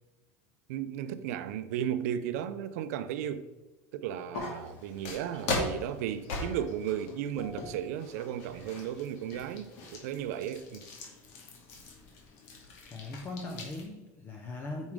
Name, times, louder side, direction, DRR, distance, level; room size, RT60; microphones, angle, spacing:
voice 1, 0.7-3.5 3.9-10.9, right 10 dB, 80° right, 0.6 m, -35 dB
sound 1, 4.3-13.9, left 3 dB, 70° left, 2.3 m, -40 dB
voice 2, 12.9-14.9, left 2 dB, 25° left, 0.8 m, -39 dB
9.0 x 6.2 x 3.7 m
cardioid pair, 155°, 8 cm